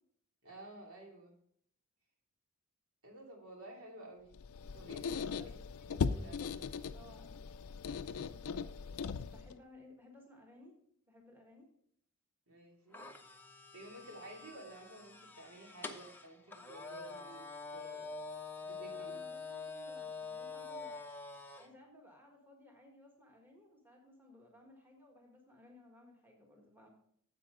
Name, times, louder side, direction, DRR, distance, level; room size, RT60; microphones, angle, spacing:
voice 1, 0.4-1.3 3.0-4.4 4.7-5.5 5.8-6.6 12.5-13.0 13.7-18.1 18.7-19.1, right 1 dB, 75° right, 0 dB, 2.7 m, -53 dB
Squeak, 4.3-9.6, left 5 dB, 80° left, 0.4 m, -39 dB
voice 2, 6.9-7.3 9.2-10.7 11.1-11.7 18.9-21.0 21.6-26.9, left 1 dB, 10° right, 0 dB, 1.5 m, -59 dB
sound 1, 12.9-21.7, left 4 dB, 10° left, 0.6 m, -46 dB
9.9 x 7.6 x 3.7 m, 0.66 s
head